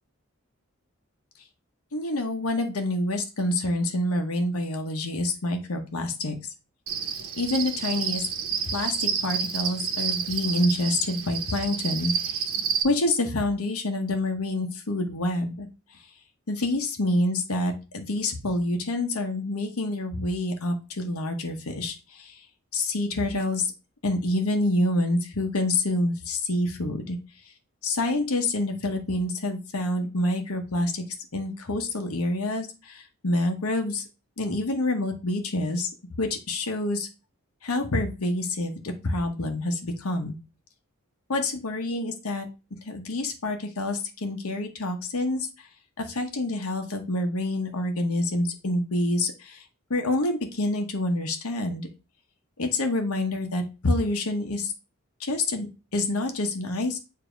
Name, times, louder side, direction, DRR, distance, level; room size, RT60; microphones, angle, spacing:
voice 1, 1.9-6.5 7.4-8.3 8.7-12.5 12.8-15.7 16.5-22.4 22.7-23.7 24.0-27.2 27.8-31.0 31.3-34.0 34.4-35.9 36.2-37.1 37.6-40.4 41.3-42.5 42.8-45.5 46.0-49.6 49.9-51.9 52.6-54.7 55.2-57.0, left 2 dB, 85° left, 4 dB, 1.0 m, -27 dB
Cricket, 6.9-12.8, right 7 dB, 75° right, 0.8 m, -29 dB
7.0 x 2.8 x 5.0 m, 0.30 s
head